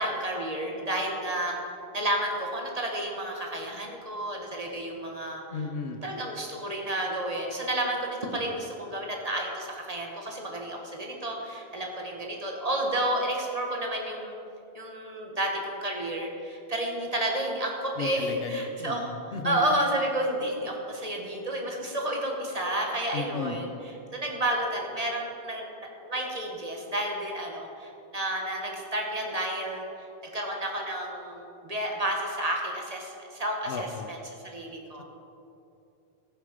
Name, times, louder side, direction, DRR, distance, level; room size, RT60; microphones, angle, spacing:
voice 1, 0.0-1.5 1.9-5.4 6.0-14.3 14.7-25.7 26.0-29.8 30.3-35.0, right 1 dB, 35° right, 0 dB, 1.5 m, -31 dB
voice 2, 5.5-6.0 18.0-19.7 23.1-23.6 33.7-34.1, left 5 dB, 70° left, 7 dB, 1.0 m, -35 dB
14.5 x 6.7 x 5.2 m, 2.7 s
omnidirectional pair, 1.1 m